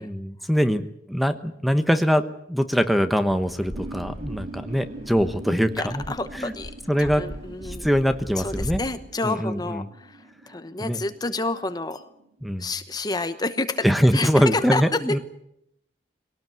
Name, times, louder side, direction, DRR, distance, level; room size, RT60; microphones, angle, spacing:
voice 1, 0.0-6.0 6.3-6.5 6.9-7.2 7.6-8.8 9.2-9.9 10.8-11.0 12.4-12.7 13.8-15.2, equal, ahead, 9 dB, 1.1 m, -23 dB
Fixed-wing aircraft airplane, 3.3-8.8, equal, 35° right, 6.7 m, -39 dB
sound 1, 3.7-13.0, right 2 dB, 80° right, 1.9 m, -43 dB
voice 2, 5.7-6.7 7.0-7.8 8.4-12.1 12.6-13.9 14.1-15.2, left 3 dB, 20° left, 10 dB, 1.0 m, -29 dB
21.5 x 18.5 x 9.3 m, 0.77 s
head